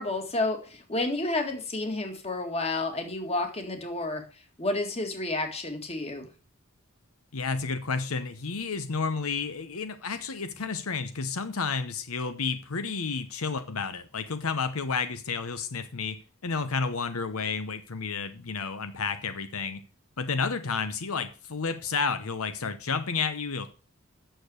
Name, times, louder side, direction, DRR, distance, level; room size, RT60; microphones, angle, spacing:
voice 1, 0.0-4.2 4.6-6.3, left 2 dB, 30° left, 5 dB, 1.9 m, -30 dB
voice 2, 7.3-19.8 20.2-23.7, left 5 dB, 80° left, 11 dB, 0.9 m, -31 dB
9.2 x 6.8 x 6.4 m, 0.36 s
head